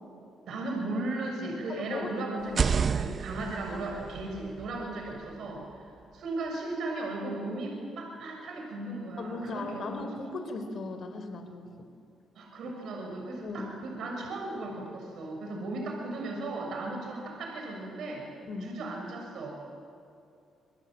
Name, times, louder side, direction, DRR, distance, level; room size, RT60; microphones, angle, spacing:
voice 1, 0.4-9.9 12.3-18.3 18.6-19.6, right 2 dB, 70° right, 1 dB, 6.6 m, -36 dB
voice 2, 1.7-2.8 9.2-11.9 13.3-13.7 18.5-18.8, left 3 dB, 55° left, 7 dB, 4.0 m, -38 dB
sound 1, 2.4-6.2, right 6 dB, 45° right, 0.7 m, -32 dB
27.0 x 22.5 x 9.1 m, 2.5 s
cardioid pair, 90°, 0 cm